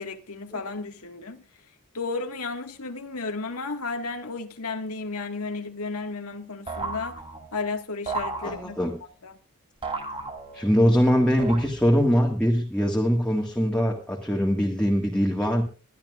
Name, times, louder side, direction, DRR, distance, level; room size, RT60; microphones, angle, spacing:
voice 1, 0.0-1.4 1.9-7.2 7.5-8.8 9.2-9.4, left 3 dB, 75° left, 1.9 m, -33 dB
sound 1, 6.7-7.6 8.1-9.0 9.8-10.8 11.4-12.1, right 3 dB, 25° right, 2.3 m, -34 dB
voice 2, 8.4-8.9 10.5-15.6, equal, 5° left, 1.8 m, -22 dB
22.5 x 12.0 x 2.5 m
head